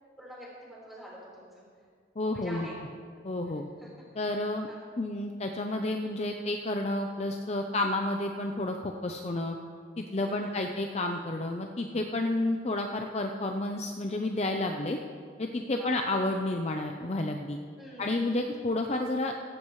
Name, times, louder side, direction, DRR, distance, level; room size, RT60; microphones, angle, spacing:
voice 1, 0.2-1.6 2.3-2.8 3.8-3.9 4.4-4.9 10.2-10.7 15.8-15.9 17.8-18.4, right 1 dB, ahead, -7 dB, 4.1 m, -47 dB
voice 2, 2.2-2.7 3.2-3.6 4.2-4.7 5.0-9.6 10.0-15.0 15.4-17.6 18.0-19.3, left 2 dB, 35° left, 3 dB, 0.6 m, -30 dB
15.5 x 15.0 x 3.2 m, 2.1 s
head